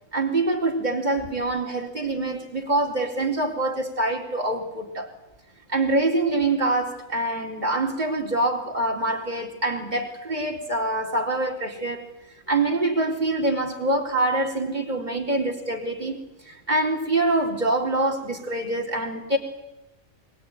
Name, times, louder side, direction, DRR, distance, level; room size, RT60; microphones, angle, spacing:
voice 1, 0.1-5.1 5.7-12.1 12.5-16.2 16.5-19.4, right 2 dB, 30° right, 2 dB, 4.1 m, -25 dB
24.0 x 23.0 x 9.4 m, 0.96 s
omnidirectional pair, 1.5 m